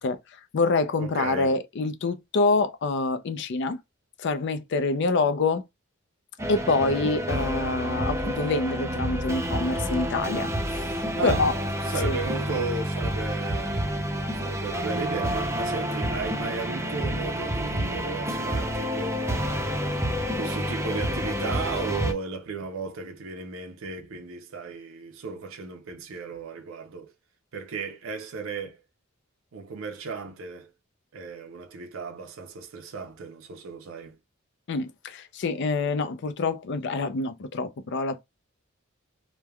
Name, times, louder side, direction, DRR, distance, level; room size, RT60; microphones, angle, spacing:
voice 1, 0.0-3.8 4.2-5.6 6.5-11.5 11.9-12.2 34.7-38.2, left 3 dB, 55° left, 0.4 m, -26 dB
voice 2, 1.0-1.6 11.2-11.5 11.9-13.9 14.4-19.6 20.3-27.1 27.5-28.8 29.5-30.7 31.1-34.2, right 4 dB, 70° right, 0.5 m, -35 dB
sound 1, 6.4-22.1, equal, 15° right, 0.5 m, -29 dB
3.2 x 2.1 x 2.2 m
head